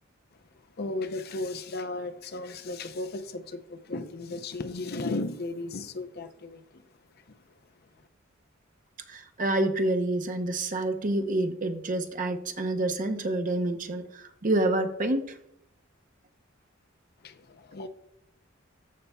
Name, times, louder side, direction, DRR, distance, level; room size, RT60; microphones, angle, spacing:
voice 1, 0.8-6.8 7.1-7.4 17.2-17.9, left 2 dB, 50° left, 8 dB, 0.6 m, -35 dB
voice 2, 9.1-15.4, right 2 dB, 40° right, 6 dB, 0.7 m, -28 dB
15.0 x 5.5 x 2.3 m, 0.76 s
head